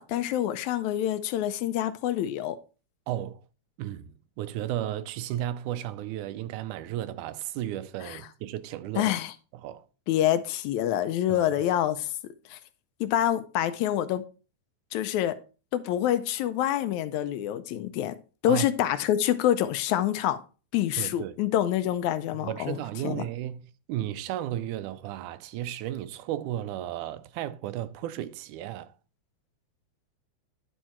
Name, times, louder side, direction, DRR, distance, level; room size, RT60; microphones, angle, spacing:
voice 1, 0.0-2.6 8.0-8.2 9.0-9.3 10.1-12.1 12.5-12.6 13.0-14.2 14.9-15.4 15.7-18.2 18.4-20.4 20.7-22.8 23.0-23.3, left 12 dB, 80° left, 1.9 m, -26 dB
voice 2, 3.1-3.4 3.8-9.1 9.6-9.9 11.3-11.4 18.5-18.7 21.0-21.4 22.4-28.9, right 12 dB, 90° right, 2.1 m, -34 dB
10.5 x 4.5 x 4.3 m
omnidirectional pair, 3.5 m